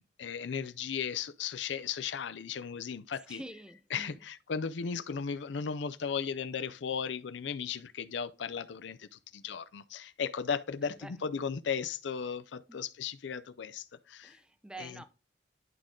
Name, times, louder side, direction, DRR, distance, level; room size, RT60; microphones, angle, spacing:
voice 1, 0.0-3.4 3.9-14.4 14.8-14.9, left 6 dB, 80° left, 0.5 m, -36 dB
voice 2, 3.1-4.3 10.8-11.1 12.7-12.8 14.2-15.0, right 1 dB, 5° right, 0.6 m, -47 dB
11.0 x 3.7 x 3.7 m
head